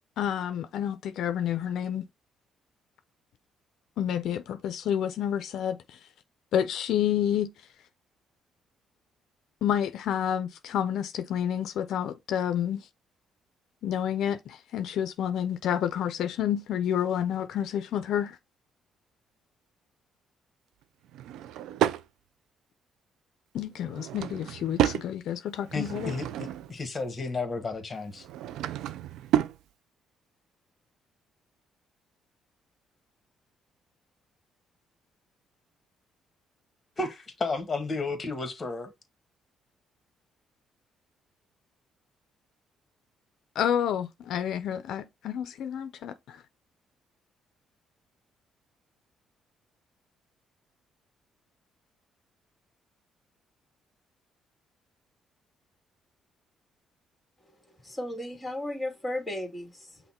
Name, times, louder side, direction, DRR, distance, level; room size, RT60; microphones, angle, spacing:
voice 1, 0.2-2.0 4.0-6.0 6.5-7.7 9.6-12.9 13.8-18.4 23.5-26.1 43.6-46.4, left 9 dB, 75° left, 0.4 m, -29 dB
Drawer open or close / Wood, 21.1-22.0 23.8-25.1 25.6-26.8 28.1-29.6, right 12 dB, 80° right, 0.4 m, -30 dB
voice 2, 25.7-28.2 37.0-38.9, left 3 dB, 30° left, 1.4 m, -32 dB
voice 3, 57.8-60.0, left 1 dB, 5° left, 1.8 m, -35 dB
5.6 x 2.1 x 4.2 m
cardioid pair, 95°, 0 cm